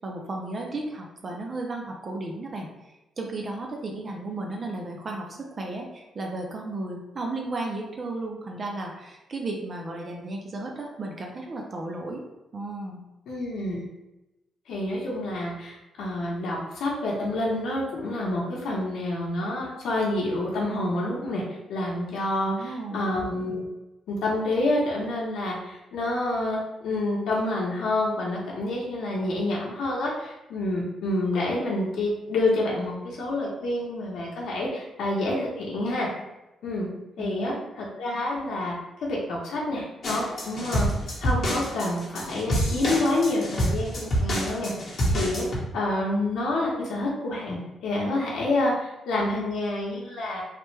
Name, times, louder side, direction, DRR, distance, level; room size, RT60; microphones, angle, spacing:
voice 1, 0.0-2.7 3.2-12.2 12.5-13.0 22.5-23.1 37.2-37.6, right 2 dB, 35° right, 0 dB, 0.4 m, -34 dB
voice 2, 13.3-13.9 14.7-21.4 21.7-23.6 24.1-36.1 36.6-36.9 37.2-38.7 39.0-40.9 41.2-45.4 45.7-50.4, left 2 dB, 75° left, -4 dB, 0.7 m, -28 dB
sound 1, 40.0-45.6, equal, 40° left, 1.0 m, -27 dB
3.2 x 2.1 x 3.1 m, 0.98 s
cardioid pair, 135°, 0 cm